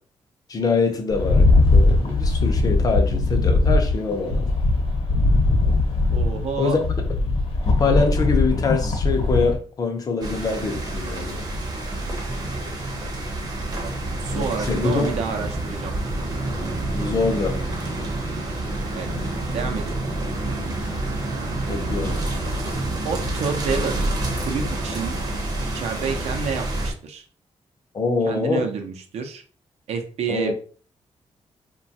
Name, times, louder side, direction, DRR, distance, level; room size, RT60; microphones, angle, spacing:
voice 1, 0.5-1.4 1.7-4.5 6.6-6.8 7.8-11.5 14.3-15.1 16.9-17.6 21.7-22.2 27.9-28.7 30.3-30.5, left 4 dB, 35° left, 0.5 m, -24 dB
Rattle, 1.1-9.6, left 2 dB, 65° left, 0.9 m, -20 dB
voice 2, 6.1-6.8 13.8-13.9 14.2-15.9 18.9-19.1 19.5-20.0 23.0-25.2 25.7-27.2 28.2-29.4 29.9-30.5, right 6 dB, 85° right, 0.6 m, -29 dB
sound 1, 10.2-26.9, right 1 dB, 40° right, 0.6 m, -28 dB
3.0 x 2.2 x 2.7 m
wide cardioid pair, 175°, 11 cm